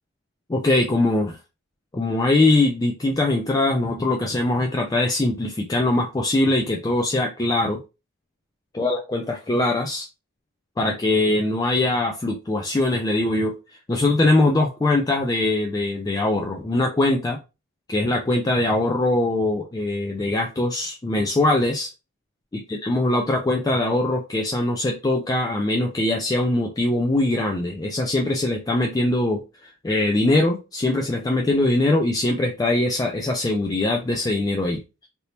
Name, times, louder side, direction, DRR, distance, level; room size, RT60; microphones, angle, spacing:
voice 1, 0.5-1.4 1.9-7.8 8.7-10.1 10.8-13.6 13.9-17.4 17.9-21.9 22.5-35.1, left 2 dB, 15° left, 1 dB, 0.3 m, -22 dB
3.3 x 2.7 x 2.8 m, 0.28 s
head